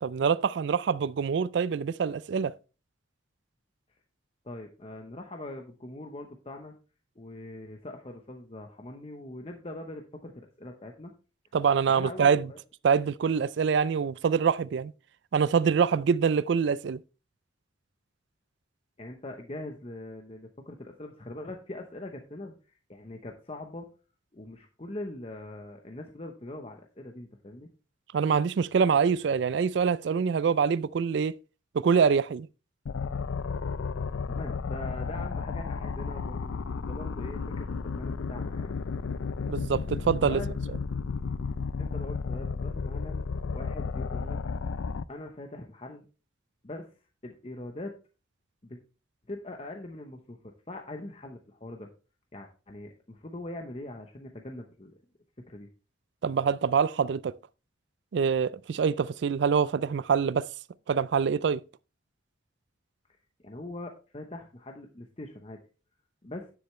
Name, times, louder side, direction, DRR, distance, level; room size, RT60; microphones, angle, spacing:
voice 1, 0.0-2.5 11.5-12.5 12.8-14.9 15.3-17.0 28.1-31.3 31.7-32.5 39.5-40.4 56.2-57.3 58.1-60.5 60.9-61.6, right 6 dB, 65° right, 0.3 m, -25 dB
voice 2, 4.4-6.7 7.2-11.1 11.9-12.6 19.0-23.9 24.3-27.7 34.3-38.7 40.3-40.8 41.8-43.2 43.5-44.4 45.1-46.0 46.6-46.8 47.2-47.9 48.6-48.8 49.3-50.4 50.7-51.9 52.3-54.9 55.5-55.7 63.4-65.6 66.2-66.5, left 1 dB, 30° left, 0.8 m, -42 dB
sound 1, 32.9-45.0, left 5 dB, 90° left, 0.4 m, -33 dB
9.7 x 8.0 x 3.1 m
head